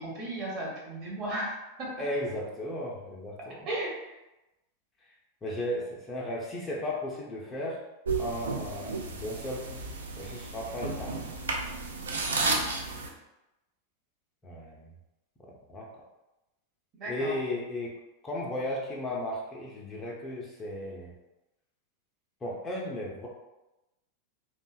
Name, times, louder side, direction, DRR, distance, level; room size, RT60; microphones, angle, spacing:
voice 1, 0.0-1.9 3.7-4.0 12.3-12.6 17.0-17.3, right 1 dB, 35° right, -4 dB, 0.8 m, -35 dB
voice 2, 2.0-3.7 5.4-7.8 8.2-9.8 10.2-11.1 14.4-14.9 15.7-15.9 17.1-17.9 18.2-21.1 22.4-23.3, left 1 dB, 20° left, -3 dB, 0.4 m, -35 dB
sound 1, 8.1-13.1, right 3 dB, 65° right, 0.3 m, -33 dB
2.5 x 2.1 x 2.2 m, 0.98 s
figure-of-eight pair, 90°, 0 cm